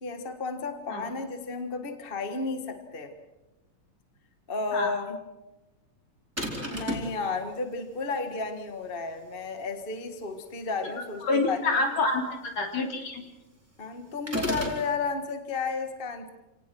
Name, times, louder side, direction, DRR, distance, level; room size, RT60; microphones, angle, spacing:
voice 1, 0.0-3.1 4.5-5.2 6.7-11.9 13.8-16.3, left 4 dB, 35° left, 7 dB, 0.9 m, -33 dB
sound 1, 6.4-7.2 14.3-14.8, equal, 5° right, 3.7 m, -31 dB
voice 2, 11.2-12.2 12.6-13.2, left 3 dB, 50° left, 2 dB, 4.2 m, -27 dB
28.0 x 18.5 x 6.3 m, 1.0 s
omnidirectional pair, 3.9 m